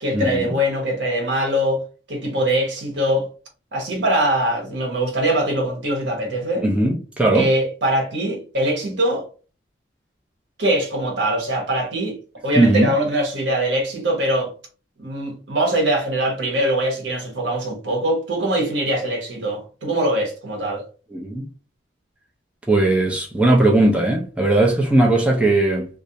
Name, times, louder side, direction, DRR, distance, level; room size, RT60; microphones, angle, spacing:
voice 1, 0.0-1.8 2.1-3.3 3.7-6.6 7.3-9.2 10.6-12.2 12.4-14.5 15.0-20.8, right 1 dB, 80° right, 0.9 m, -22 dB
voice 2, 6.6-7.5 12.6-12.9 21.1-21.5 22.7-25.9, right 2 dB, 5° right, 0.4 m, -18 dB
2.4 x 2.0 x 2.7 m
head